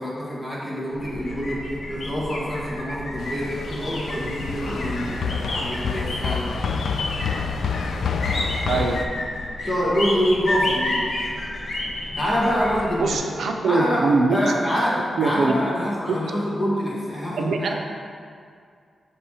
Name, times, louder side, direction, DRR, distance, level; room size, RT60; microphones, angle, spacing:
voice 1, 0.0-6.6 8.7-8.9 9.6-11.1 12.2-17.7, equal, 25° left, -6 dB, 1.4 m, -26 dB
sound 1, 0.9-13.2, left 1 dB, 50° left, 0.9 m, -31 dB
sound 2, 3.2-9.1, left 5 dB, 75° left, 0.3 m, -28 dB
voice 2, 8.6-9.0 13.0-14.5 15.2-15.6 16.1-16.2 17.4-17.7, right 3 dB, 80° right, 2 dB, 0.5 m, -22 dB
7.0 x 3.1 x 4.7 m, 2.2 s
wide cardioid pair, 135°, 0 cm